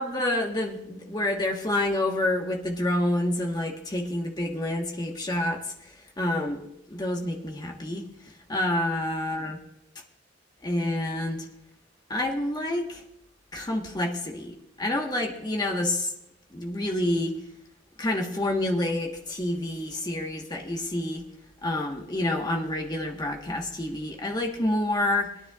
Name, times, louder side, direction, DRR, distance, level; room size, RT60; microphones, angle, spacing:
voice 1, 0.0-5.9 6.2-8.0 8.5-9.6 10.6-11.4 12.1-13.0 13.5-16.1 16.5-17.4 18.0-21.3 21.6-25.3, left 1 dB, 20° left, 1 dB, 1.3 m, -28 dB
23.0 x 9.9 x 2.4 m, 0.81 s
head